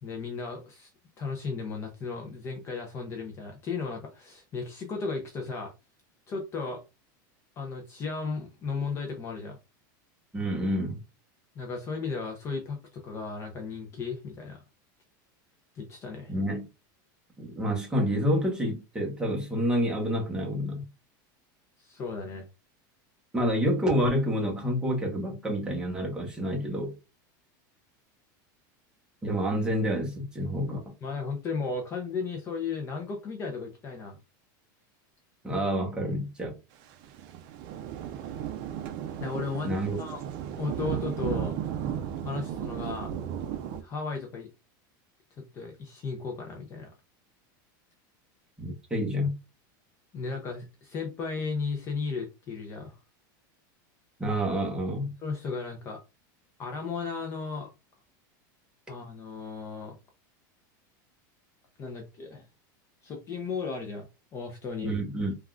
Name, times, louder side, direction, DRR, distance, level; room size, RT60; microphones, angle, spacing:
voice 1, 0.0-0.9 1.2-5.7 6.3-6.8 7.6-9.6 11.6-14.6 15.7-16.3 21.8-22.4 31.0-34.2 39.2-40.2 40.6-41.6 42.2-43.1 43.8-44.5 45.4-46.9 50.1-53.0 55.2-56.0 56.6-57.7 58.9-60.0 61.8-62.4 63.0-64.9, left 4 dB, 25° left, 0.5 m, -35 dB
voice 2, 10.3-11.0 16.3-16.7 17.4-20.8 23.3-26.9 29.2-31.0 35.4-36.5 39.6-40.0 48.6-49.3 54.2-55.1 64.8-65.3, equal, 5° right, 0.9 m, -28 dB
sound 1, 36.9-43.8, right 9 dB, 45° right, 0.5 m, -34 dB
3.4 x 2.3 x 2.4 m
supercardioid pair, 160°, 11 cm